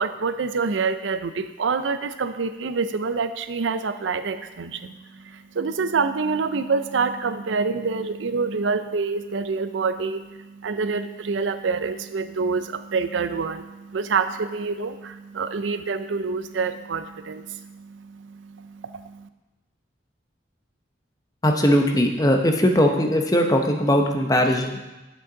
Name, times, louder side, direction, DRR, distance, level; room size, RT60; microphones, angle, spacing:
voice 1, 0.0-19.3, right 4 dB, 85° right, 10 dB, 0.5 m, -27 dB
voice 2, 21.4-24.8, equal, 20° left, 3 dB, 0.7 m, -20 dB
8.4 x 7.7 x 3.9 m, 1.1 s
head